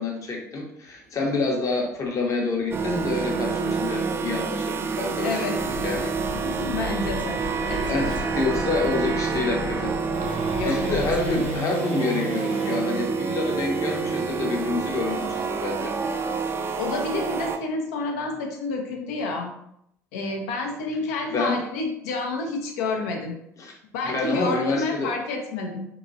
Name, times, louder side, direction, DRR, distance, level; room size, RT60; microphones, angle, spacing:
voice 1, 0.0-6.1 7.6-9.9 10.7-16.0 21.3-21.6 23.6-23.8 24.0-25.1, left 3 dB, 40° left, 0 dB, 0.9 m, -27 dB
sound 1, 0.9-12.8, right 1 dB, 85° right, 0.9 m, -38 dB
sound 2, 2.7-17.6, right 5 dB, 30° right, 0.4 m, -28 dB
voice 2, 5.2-5.6 6.3-7.4 7.7-7.9 10.5-11.0 16.8-19.5 20.1-23.3 23.9-25.9, left 3 dB, 65° left, 2 dB, 0.7 m, -29 dB
sound 3, 5.5-11.6, left 3 dB, 20° left, 0.6 m, -36 dB
3.7 x 2.9 x 2.6 m, 0.75 s
figure-of-eight pair, 60°, 9 cm